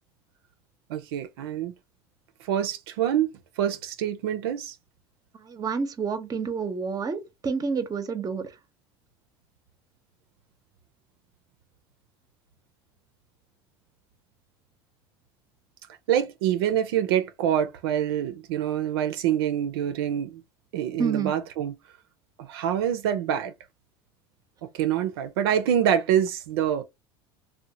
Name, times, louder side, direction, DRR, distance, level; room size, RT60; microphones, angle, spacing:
voice 1, 0.9-1.7 2.4-4.7 16.1-20.4 20.7-21.7 22.4-23.5 24.7-26.8, right 10 dB, 80° right, 0.4 m, -26 dB
voice 2, 5.3-8.5 21.0-21.3, right 5 dB, 30° right, 0.6 m, -29 dB
2.8 x 2.1 x 2.7 m
hypercardioid pair, 80°, 13 cm